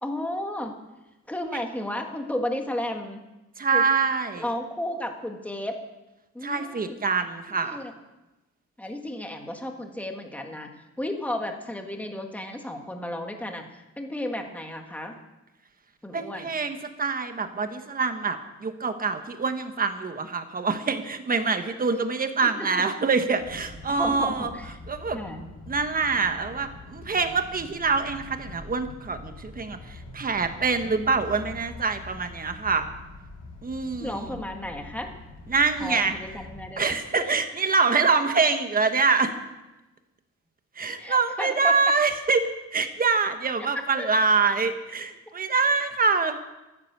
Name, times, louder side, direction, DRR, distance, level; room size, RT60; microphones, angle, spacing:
voice 1, 0.0-0.7 1.3-3.2 3.7-3.9 4.3-5.8 6.3-7.0 7.6-7.9 8.8-10.7 11.0-15.2 16.0-16.5 22.4-22.7 23.9-24.8 25.1-25.4 30.8-31.1 34.0-35.2 35.8-36.9 37.2-37.3 41.0-41.8 44.0-44.1, left 1 dB, 5° left, 3 dB, 1.6 m, -33 dB
voice 2, 3.6-4.4 6.4-7.8 16.1-24.5 24.9-25.2 25.7-32.9 33.6-34.4 35.5-36.1 36.8-39.3 40.8-46.4, right 4 dB, 30° right, 8 dB, 1.3 m, -25 dB
sound 1, 23.4-36.7, left 3 dB, 85° left, 3.5 m, -44 dB
14.5 x 13.0 x 6.8 m, 1.0 s
wide cardioid pair, 165°, 30 cm